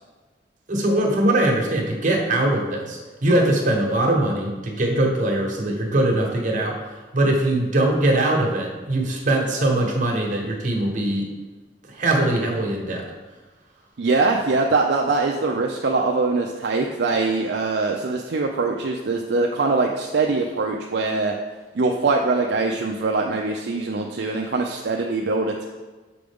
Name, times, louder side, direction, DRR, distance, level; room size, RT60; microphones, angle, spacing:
voice 1, 0.7-6.7 7.1-11.3 11.9-13.0, right 1 dB, 45° right, -1 dB, 1.2 m, -21 dB
voice 2, 14.0-21.3 21.7-25.7, right 3 dB, 65° right, 1 dB, 0.4 m, -22 dB
6.8 x 5.1 x 3.5 m, 1.3 s
head